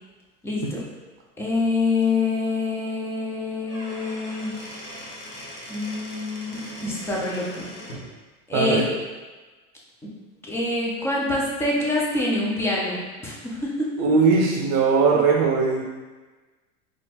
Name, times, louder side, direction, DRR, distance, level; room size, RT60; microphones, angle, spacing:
voice 1, 0.4-0.8 1.4-4.5 5.7-7.6 8.5-8.8 10.4-14.1, left 2 dB, 5° left, -4 dB, 0.3 m, -26 dB
Squeak / Wood, 3.5-8.1, equal, 90° left, 1.2 m, -40 dB
voice 2, 8.5-8.9 14.0-15.8, right 4 dB, 40° right, -1 dB, 0.6 m, -19 dB
4.2 x 2.5 x 2.8 m, 1.3 s
hypercardioid pair, 105°, 45 cm